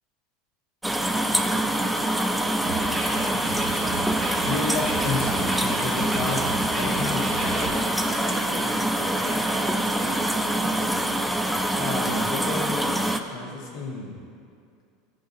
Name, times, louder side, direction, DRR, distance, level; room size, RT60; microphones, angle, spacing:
sound 1, 0.8-13.2, right 1 dB, 5° right, 0.3 m, -25 dB
sound 2, 2.6-7.7, right 2 dB, 25° right, 1.2 m, -33 dB
voice 1, 4.5-6.5 6.8-7.4 11.8-12.9 13.3-14.3, left 3 dB, 60° left, -4 dB, 1.0 m, -31 dB
voice 2, 7.4-10.8, right 1 dB, 80° right, -5 dB, 1.4 m, -37 dB
10.0 x 3.9 x 2.6 m, 2.4 s
supercardioid pair, 120°, 0 cm